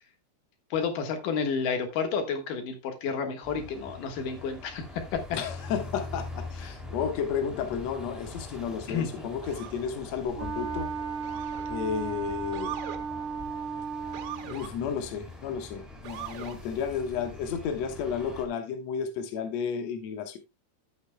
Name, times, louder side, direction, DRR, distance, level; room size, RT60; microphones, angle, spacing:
voice 1, 0.7-4.8 5.1-5.2 8.9-9.2, left 6 dB, 60° left, 2.6 m, -30 dB
sound 1, 3.4-18.4, left 2 dB, ahead, 1.1 m, -43 dB
voice 2, 5.3-10.9 11.7-12.8 14.5-20.4, left 7 dB, 85° left, 1.5 m, -32 dB
Motor vehicle (road) / Siren, 9.4-9.8 11.2-11.8 12.5-13.0 14.1-14.7 16.0-16.6, right 10 dB, 80° right, 3.5 m, -40 dB
Wind instrument woodwind instrument, 10.4-14.6, right 6 dB, 50° right, 1.9 m, -35 dB
13.0 x 8.4 x 2.2 m
omnidirectional pair, 5.0 m